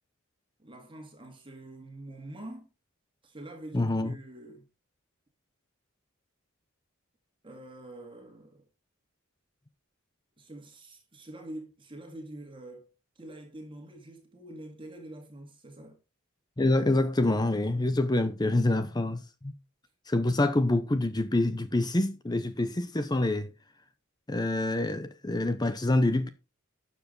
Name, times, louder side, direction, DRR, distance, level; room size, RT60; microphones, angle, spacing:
voice 1, 0.6-2.7 3.2-4.7 7.4-8.7 10.4-16.0, right 1 dB, 25° right, 2.0 m, -45 dB
voice 2, 3.7-4.1 16.6-19.5 20.1-23.5 24.3-26.3, left 2 dB, 20° left, 0.7 m, -26 dB
12.5 x 7.1 x 3.9 m
head